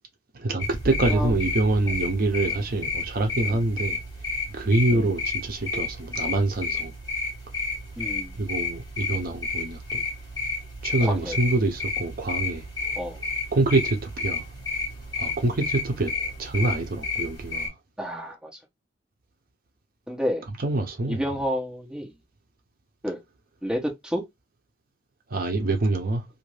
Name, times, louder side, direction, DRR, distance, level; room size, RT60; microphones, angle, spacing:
voice 1, 0.3-4.0 4.5-6.9 8.4-10.1 10.8-12.7 13.5-14.5 15.2-16.1 16.4-17.7 20.6-21.2 25.3-26.2, right 2 dB, 50° right, 0.6 m, -25 dB
sound 1, 0.6-17.7, left 3 dB, 20° left, 1.4 m, -31 dB
voice 2, 8.0-8.4 11.0-11.4 12.9-13.2 15.5-15.6 18.0-18.5 20.1-20.4 21.1-22.1 23.0-23.2 23.6-24.2, equal, 5° right, 0.9 m, -30 dB
2.6 x 2.5 x 3.0 m
head